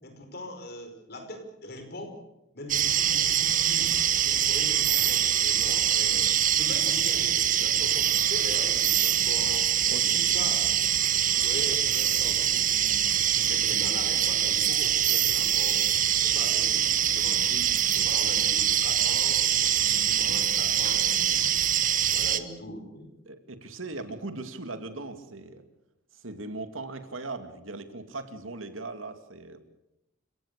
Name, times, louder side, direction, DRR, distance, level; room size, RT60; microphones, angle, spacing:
voice 1, 0.0-2.2 2.5-9.8 10.0-10.9 11.4-15.8 16.2-23.1, left 1 dB, 50° left, 6 dB, 5.2 m, -41 dB
sound 1, 2.7-22.4, right 10 dB, 40° right, 1.2 m, -24 dB
voice 2, 9.9-10.3 23.3-25.6 26.1-29.6, right 2 dB, 85° right, 8 dB, 2.5 m, -39 dB
30.0 x 17.5 x 6.8 m, 0.89 s
head